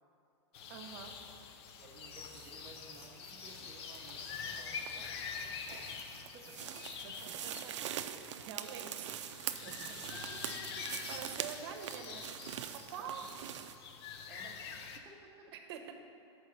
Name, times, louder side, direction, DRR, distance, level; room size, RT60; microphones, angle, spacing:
sound 1, 0.5-15.0, left 6 dB, 65° left, 0.6 m, -46 dB
voice 1, 0.7-1.1 5.7-5.8 7.0-7.7 8.0-9.1 9.6-9.7 10.9-12.3 12.9-13.2 15.5-15.9, right 8 dB, 60° right, 5 dB, 0.8 m, -46 dB
voice 2, 1.8-6.8 7.2-7.4 9.7-11.0 13.0-13.1 14.3-15.5, right 3 dB, 20° right, -4 dB, 0.7 m, -57 dB
sound 2, 2.2-13.8, right 10 dB, 80° right, 0.4 m, -44 dB
5.6 x 4.7 x 6.3 m, 2.5 s
hypercardioid pair, 135°, 15 cm